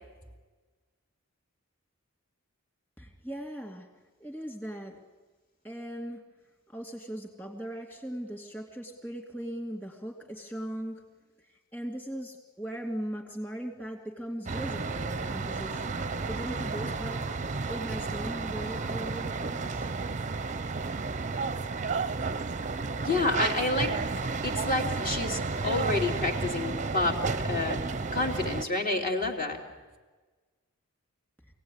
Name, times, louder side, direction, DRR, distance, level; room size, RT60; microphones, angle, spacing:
voice 1, 3.0-3.9 4.2-5.0 5.6-6.2 6.7-11.0 11.5-17.3 17.7-19.9, right 1 dB, 10° left, 0 dB, 2.6 m, -39 dB
sound 1, 14.5-28.7, right 4 dB, 35° right, 0.7 m, -32 dB
voice 2, 23.0-23.9 24.4-27.2 27.4-27.8 28.1-29.6, left 2 dB, 40° left, 0 dB, 2.8 m, -29 dB
26.0 x 17.5 x 9.8 m, 1.3 s
head